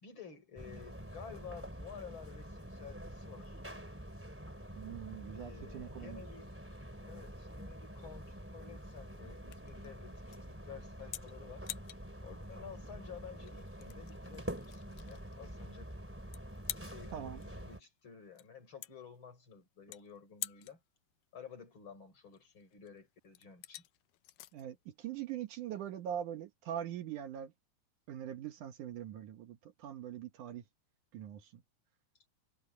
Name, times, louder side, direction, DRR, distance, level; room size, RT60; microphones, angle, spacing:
voice 1, 0.0-3.6 5.3-11.7 12.2-15.9 16.9-20.8 21.3-23.9, left 7 dB, 30° left, 5.3 m, -52 dB
sound 1, 0.6-17.8, equal, 5° right, 2.7 m, -47 dB
voice 2, 4.7-6.2 17.1-17.4 24.5-27.5 28.1-30.6 31.1-31.6, right 10 dB, 65° right, 2.4 m, -42 dB
sound 2, 7.5-26.0, left 16 dB, 75° left, 2.2 m, -50 dB
omnidirectional pair, 4.3 m